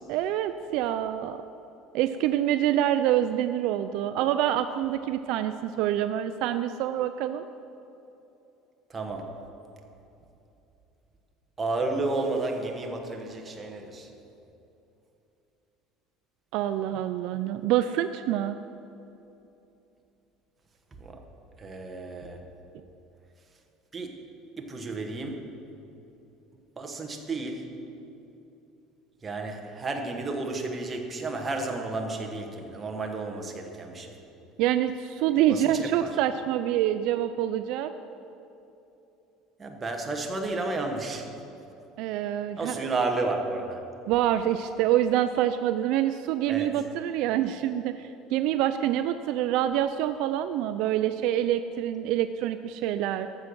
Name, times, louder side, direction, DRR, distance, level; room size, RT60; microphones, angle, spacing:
voice 1, 0.1-1.4 1.9-7.5 16.5-18.6 34.6-37.9 42.0-42.8 44.1-53.3, right 11 dB, 65° right, 10 dB, 0.4 m, -26 dB
voice 2, 8.9-9.4 11.6-14.1 21.0-21.2 21.6-22.4 23.9-24.2 24.6-25.6 26.8-27.8 29.2-34.2 35.5-36.2 39.6-41.3 42.6-43.8 46.5-46.7, right 3 dB, 15° right, 3 dB, 1.1 m, -32 dB
14.0 x 6.4 x 6.1 m, 2.9 s
cardioid pair, 160°, 0 cm